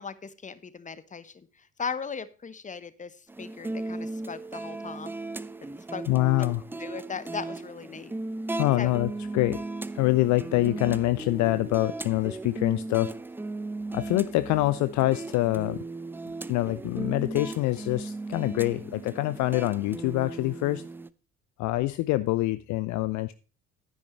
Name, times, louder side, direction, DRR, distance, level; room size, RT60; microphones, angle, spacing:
voice 1, 0.0-5.2 5.9-6.0 6.4-6.5 6.8-8.1 8.8-9.0, left 5 dB, 20° left, 15 dB, 1.0 m, -38 dB
sound 1, 3.3-21.1, right 2 dB, 5° right, 0.5 m, -36 dB
voice 2, 6.1-6.6 8.6-9.6 9.9-13.2 13.9-15.8 16.5-20.8 21.6-23.3, left 18 dB, 45° left, 15 dB, 0.6 m, -25 dB
11.5 x 10.0 x 3.1 m, 0.36 s
figure-of-eight pair, 55°, 40 cm